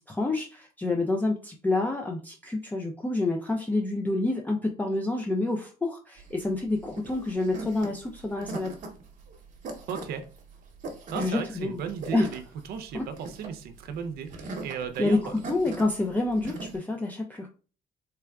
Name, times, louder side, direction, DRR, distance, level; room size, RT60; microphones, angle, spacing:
voice 1, 0.1-8.7 11.1-11.8 12.1-12.3 12.9-13.0 15.0-17.5, left 2 dB, 10° left, 1 dB, 0.4 m, -28 dB
sound 1, 6.2-16.8, right 3 dB, 50° right, 0.9 m, -41 dB
voice 2, 9.9-10.2 11.1-12.4 12.7-15.3, right 7 dB, 70° right, 9 dB, 0.5 m, -35 dB
3.4 x 3.2 x 2.3 m, 0.37 s
cardioid pair, 110°, 17 cm